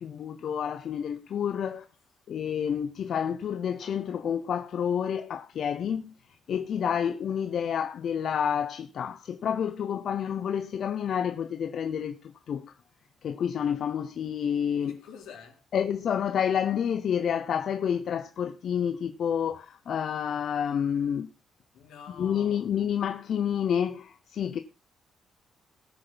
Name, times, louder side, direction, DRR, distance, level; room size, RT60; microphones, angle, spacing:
voice 1, 0.0-1.8 2.3-6.1 6.5-12.7 13.2-15.0 15.7-21.3 22.2-24.6, left 8 dB, 60° left, 0.8 m, -29 dB
voice 2, 14.8-15.6 21.7-22.7, left 7 dB, 85° left, 3.8 m, -47 dB
19.0 x 6.8 x 4.0 m
cardioid pair, 90°, 0 cm